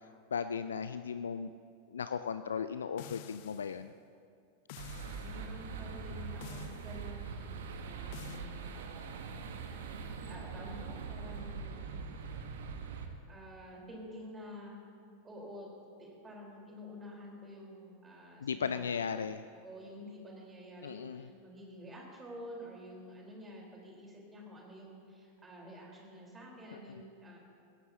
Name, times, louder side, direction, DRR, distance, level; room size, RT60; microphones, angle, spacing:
voice 1, 0.3-1.5 1.9-3.9 18.4-19.4 20.8-21.3, left 6 dB, 70° left, 11 dB, 0.4 m, -36 dB
sound 1, 3.0-3.8 4.7-5.4 6.4-7.0 8.1-8.4, left 11 dB, 50° left, 0.7 m, -49 dB
sound 2, 4.8-13.1, right 5 dB, 60° right, 1.1 m, -42 dB
voice 2, 5.2-9.4 9.8-12.0 13.3-14.8 15.2-15.7 16.0-19.3 19.6-27.4, equal, 15° right, -2 dB, 3.9 m, -49 dB
21.0 x 16.5 x 2.8 m, 2.4 s
figure-of-eight pair, 90°, 0 cm